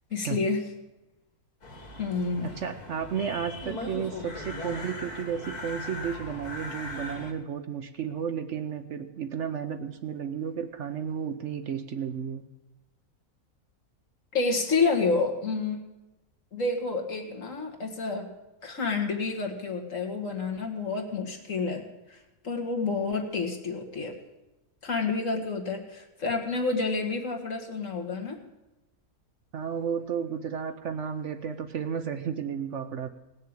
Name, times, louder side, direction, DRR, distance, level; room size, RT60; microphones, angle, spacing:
voice 1, 0.1-0.7 2.0-2.5 14.3-15.8 16.5-18.3 18.6-22.2 22.4-24.2 24.8-28.4, left 4 dB, 60° left, 2 dB, 2.0 m, -29 dB
sound 1, 1.6-7.3, left 2 dB, 85° left, 2.7 m, -39 dB
voice 2, 2.4-12.4 29.5-33.1, right 7 dB, 60° right, 9 dB, 1.0 m, -33 dB
18.0 x 6.6 x 8.8 m, 1.0 s
omnidirectional pair, 1.6 m